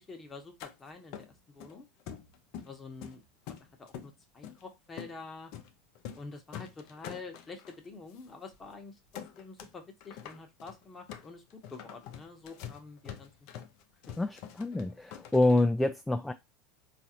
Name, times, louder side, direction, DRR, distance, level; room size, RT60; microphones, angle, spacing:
voice 1, 0.0-1.8 2.6-3.2 3.5-5.5 6.1-8.9 9.4-11.4 11.7-13.3, left 4 dB, 25° left, 0.9 m, -47 dB
sound 1, 0.6-0.7 1.1-1.7 2.1-2.8 3.0-4.1 4.4-4.6 5.0-5.2 5.5-5.7 6.0-6.3 6.5-7.8 8.2-8.3 8.5-8.7 9.1-9.7 10.0-15.6, left 9 dB, 60° left, 0.6 m, -45 dB
voice 2, 14.2-16.3, left 2 dB, 10° left, 0.3 m, -27 dB
3.9 x 2.5 x 2.8 m
hypercardioid pair, 85°, 0 cm